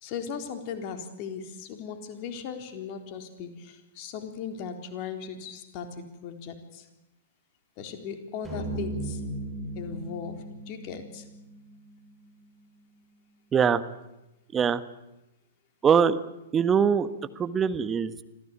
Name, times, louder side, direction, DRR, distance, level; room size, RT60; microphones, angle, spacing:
voice 1, 0.0-6.8 7.8-9.2 9.7-10.4 10.7-11.2, left 7 dB, 40° left, 6 dB, 3.9 m, -38 dB
sound 1, 8.4-12.8, right 2 dB, 5° right, 7.8 m, -37 dB
voice 2, 13.5-13.8 14.5-14.8 15.8-16.2 16.5-17.1 17.4-18.1, right 7 dB, 20° right, 13 dB, 1.4 m, -22 dB
26.5 x 16.5 x 8.9 m, 0.96 s
figure-of-eight pair, 110°, 0 cm